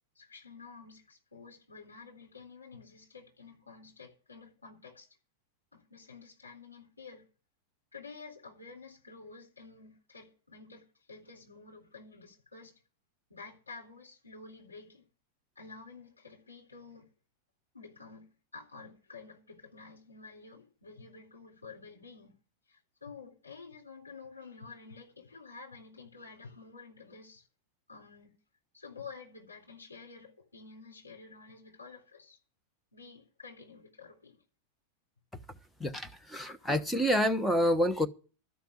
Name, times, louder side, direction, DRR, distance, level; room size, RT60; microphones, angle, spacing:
voice 1, 0.2-5.1 5.7-7.3 7.9-12.7 13.3-15.1 15.6-17.1 17.7-22.4 22.7-27.5 27.9-28.3 28.7-32.4 32.9-34.4, left 4 dB, 80° left, 3.9 m, -50 dB
voice 2, 35.8-38.1, equal, 5° left, 1.2 m, -28 dB
13.0 x 5.8 x 8.7 m
figure-of-eight pair, 90°, 0 cm